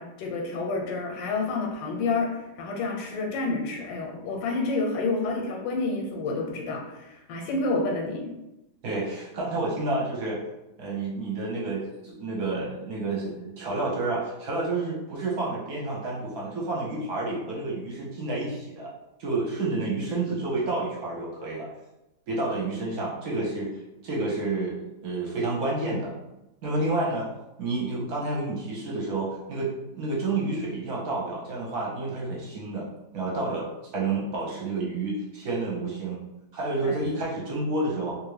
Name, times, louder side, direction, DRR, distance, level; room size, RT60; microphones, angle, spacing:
voice 1, 0.0-8.3 36.8-37.1, left 3 dB, 85° left, 1 dB, 1.4 m, -29 dB
voice 2, 8.8-10.4 10.8-18.9 19.2-21.7 22.3-23.7 24.0-26.1 26.6-27.3 27.6-32.9 33.1-36.2 36.5-38.1, right 2 dB, 65° right, -4 dB, 1.1 m, -29 dB
2.9 x 2.5 x 3.2 m, 0.95 s
omnidirectional pair, 1.9 m